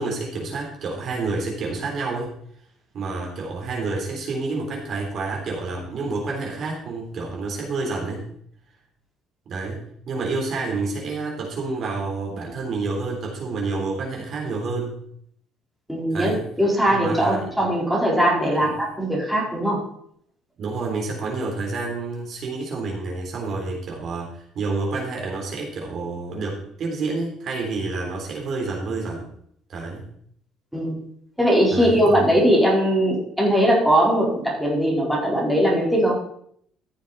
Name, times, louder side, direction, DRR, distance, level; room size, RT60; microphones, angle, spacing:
voice 1, 0.0-2.3 2.9-8.2 9.4-15.0 16.1-16.4 16.9-17.5 18.5-18.8 20.6-29.3 29.7-30.1 31.7-32.2, right 3 dB, 50° right, -1 dB, 3.6 m, -29 dB
voice 2, 15.9-16.3 16.6-19.8 30.7-31.0 31.4-36.2, equal, ahead, -5 dB, 4.2 m, -20 dB
14.5 x 7.3 x 4.2 m, 0.67 s
cardioid pair, 120°, 0 cm